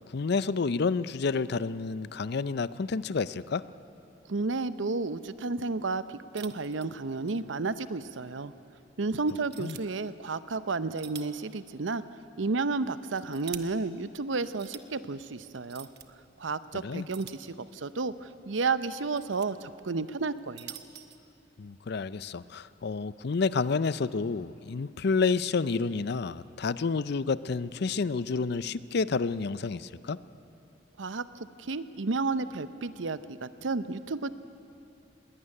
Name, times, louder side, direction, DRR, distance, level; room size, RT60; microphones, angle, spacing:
voice 1, 0.1-3.6 9.6-9.7 16.7-17.1 21.6-30.2, left 4 dB, 60° left, 16 dB, 0.5 m, -29 dB
voice 2, 4.3-8.5 9.0-12.0 12.4-15.9 16.4-20.8 31.0-31.2 31.6-34.3, right 3 dB, 85° right, 14 dB, 0.7 m, -32 dB
sound 1, 6.4-7.4 7.7-7.8 8.4-8.5 9.3-9.8 10.7-11.5 11.8-11.9 12.8-13.6 14.4-14.8 15.6-16.1 17.1-17.9 18.8-19.5 20.3-21.2, right 11 dB, 60° right, 1.0 m, -46 dB
20.0 x 18.0 x 9.9 m, 2.9 s
head